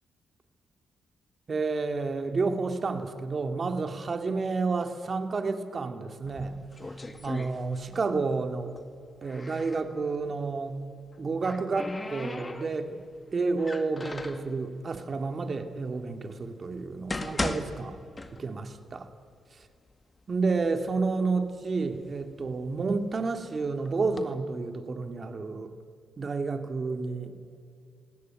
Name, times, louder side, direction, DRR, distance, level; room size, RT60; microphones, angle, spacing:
voice 1, 1.5-6.6 7.2-8.7 9.2-10.8 11.2-13.0 13.3-18.0 18.3-19.0 20.3-25.7 26.2-27.3, right 4 dB, 45° right, 7 dB, 2.5 m, -30 dB
sound 1, 6.2-8.1 8.4-9.9 11.0-13.0 13.6-14.5 15.3-15.4 16.0-16.1 16.8-18.8 19.1-19.2 19.9-20.0 20.4-21.0 21.5-23.2 23.9-24.2, left 2 dB, 25° left, 2.1 m, -38 dB
27.5 x 17.5 x 9.6 m, 2.3 s
supercardioid pair, 60°, 0 cm